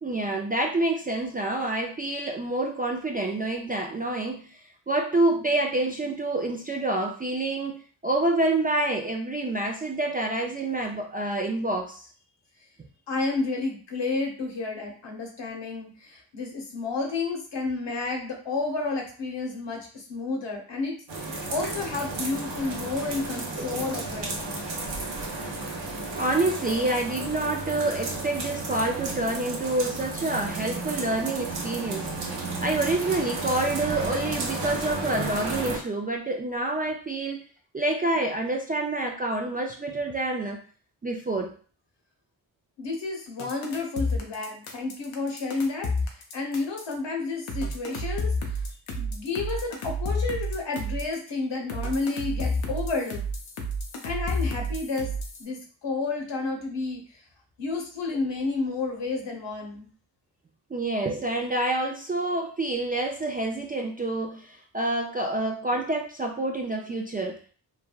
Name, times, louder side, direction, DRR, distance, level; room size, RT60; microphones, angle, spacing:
voice 1, 0.0-4.5 4.9-12.1 23.6-23.8 26.2-32.1 32.4-37.4 37.7-40.6 41.0-41.5 60.7-67.4, right 2 dB, 20° right, 1 dB, 0.3 m, -27 dB
voice 2, 13.1-24.7 42.8-48.6 48.9-53.2 54.0-55.1 55.4-57.2 57.6-59.9, left 3 dB, 65° left, 1 dB, 1.0 m, -31 dB
sound 1, 21.1-35.8, right 2 dB, 65° right, 0.9 m, -33 dB
sound 2, 43.4-46.9 47.5-51.2 51.7-55.4, left 1 dB, 85° left, 0.7 m, -30 dB
3.2 x 2.2 x 2.3 m, 0.42 s
cardioid pair, 50°, 47 cm